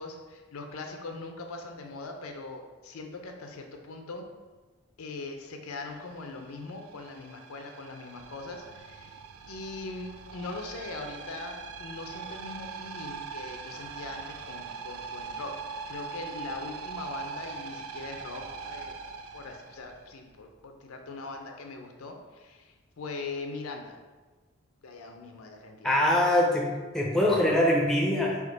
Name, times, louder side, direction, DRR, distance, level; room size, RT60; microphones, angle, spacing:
voice 1, 0.0-4.2 5.0-9.2 9.5-18.9 19.3-24.0 24.8-25.9, left 3 dB, 90° left, 4 dB, 0.5 m, -41 dB
sound 1, 5.9-20.4, right 5 dB, 90° right, 0.4 m, -42 dB
voice 2, 25.8-26.7 26.9-28.4, left 1 dB, ahead, -2 dB, 0.4 m, -23 dB
3.6 x 2.8 x 3.9 m, 1.3 s
head